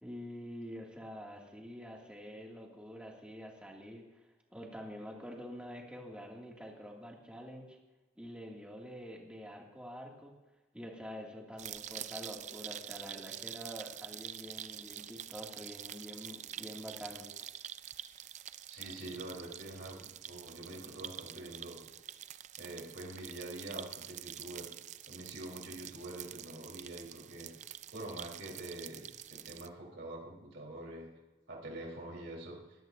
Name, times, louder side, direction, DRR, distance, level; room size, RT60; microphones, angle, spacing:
voice 1, 0.0-4.0 4.5-7.8 8.2-10.3 10.7-17.3, equal, 5° right, -1 dB, 2.3 m, -46 dB
sound 1, 11.6-29.7, right 11 dB, 35° right, 0.4 m, -46 dB
voice 2, 18.7-21.8 22.6-24.7 25.1-27.5 27.9-31.1 31.5-32.6, right 1 dB, 65° right, -2 dB, 3.9 m, -45 dB
21.0 x 16.0 x 2.7 m, 1.2 s
head